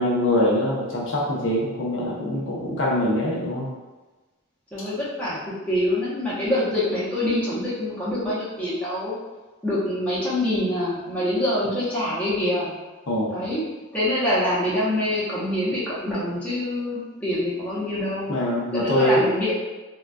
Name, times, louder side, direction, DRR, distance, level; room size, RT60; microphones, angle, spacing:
voice 1, 0.0-3.7 13.1-13.4 18.3-19.2, left 1 dB, 60° left, -5 dB, 0.7 m, -23 dB
voice 2, 4.7-9.1 9.6-12.7 13.3-13.6 13.9-18.3 18.7-19.5, left 1 dB, 5° left, -10 dB, 0.8 m, -25 dB
3.7 x 2.3 x 2.2 m, 1.2 s
head